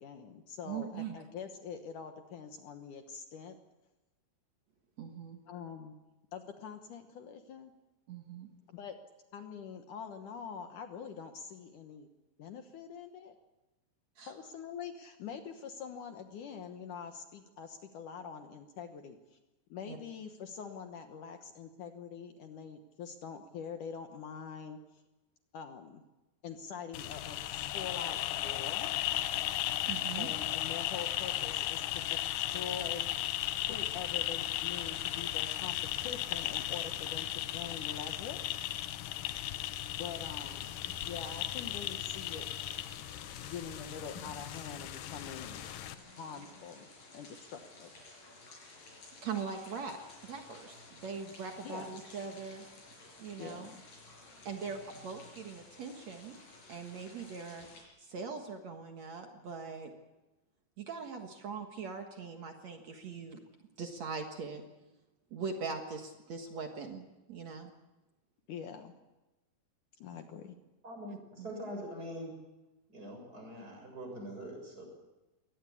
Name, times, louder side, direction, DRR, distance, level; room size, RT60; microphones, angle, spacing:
voice 1, 0.0-3.6 5.5-6.0 6.3-7.7 8.7-9.0 9.3-12.1 12.4-13.4 14.3-19.4 19.7-25.0 25.5-26.0 26.4-28.9 30.2-38.4 39.8-40.7 41.0-42.5 43.4-45.7 46.2-46.9 47.1-48.0 51.6-51.9 53.4-53.8 68.5-68.9 70.0-70.6, left 7 dB, 70° left, 7 dB, 2.0 m, -45 dB
voice 2, 0.7-1.2 5.0-5.4 8.1-8.5 14.2-14.3 19.9-20.0 29.9-30.3 43.3-43.5 49.2-50.0 50.2-52.7 53.2-53.7 54.2-56.4 56.7-57.7 58.0-59.9 60.8-63.4 63.8-64.6 65.3-67.7 71.1-71.5, right 5 dB, 60° right, 4 dB, 1.9 m, -41 dB
sound 1, 26.9-45.9, left 13 dB, 90° left, 1.9 m, -36 dB
sound 2, 40.1-57.8, left 2 dB, 50° left, 7.0 m, -54 dB
voice 3, 70.8-72.3 72.9-74.9, equal, 20° right, 2 dB, 7.1 m, -43 dB
22.5 x 18.5 x 8.5 m, 1.1 s
omnidirectional pair, 5.2 m